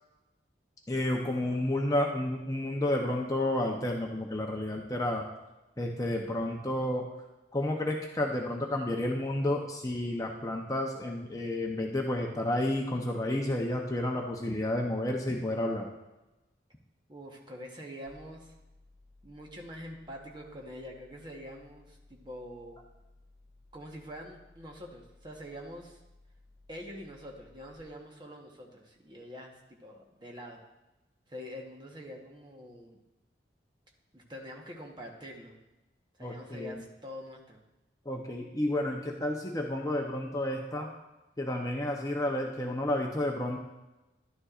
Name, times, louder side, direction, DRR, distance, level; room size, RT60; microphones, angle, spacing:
voice 1, 0.9-5.2 5.8-7.1 7.5-15.9 36.2-36.8 38.1-40.9 41.4-43.6, left 1 dB, 20° left, 1 dB, 0.7 m, -31 dB
voice 2, 17.1-18.5 19.2-22.8 23.7-26.0 26.7-30.6 31.3-33.0 34.1-35.5 36.2-37.6, equal, 25° right, 0 dB, 1.1 m, -45 dB
sound 1, 18.1-27.8, left 2 dB, 80° right, 2.4 m, -60 dB
11.0 x 9.6 x 2.5 m, 1.0 s
head